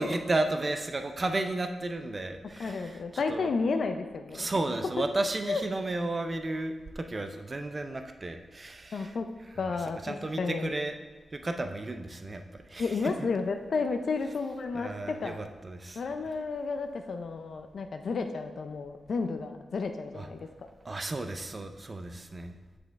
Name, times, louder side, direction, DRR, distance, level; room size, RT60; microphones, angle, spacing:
voice 1, 0.0-3.0 3.3-3.5 4.3-9.2 9.6-9.7 10.0-10.9 11.3-13.1 14.7-16.0 20.2-20.3 20.8-22.5, right 2 dB, 30° right, 7 dB, 0.4 m, -33 dB
voice 2, 2.6-4.5 5.5-5.6 8.9-9.3 9.6-10.7 12.8-15.4 16.0-20.7, left 4 dB, 60° left, 6 dB, 0.4 m, -32 dB
7.8 x 5.1 x 3.5 m, 1.2 s
wide cardioid pair, 130°, 0 cm